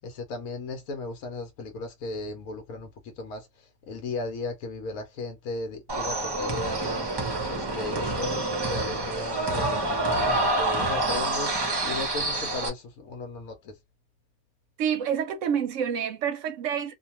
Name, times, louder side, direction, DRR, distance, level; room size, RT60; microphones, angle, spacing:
voice 1, 0.0-3.5 3.9-7.1 7.5-11.5 11.8-13.7, left 3 dB, 80° left, 1.1 m, -36 dB
sound 1, 5.9-12.7, right 2 dB, 25° right, 0.6 m, -27 dB
voice 2, 14.8-16.9, right 8 dB, 70° right, 0.9 m, -28 dB
2.5 x 2.2 x 2.8 m
omnidirectional pair, 1.4 m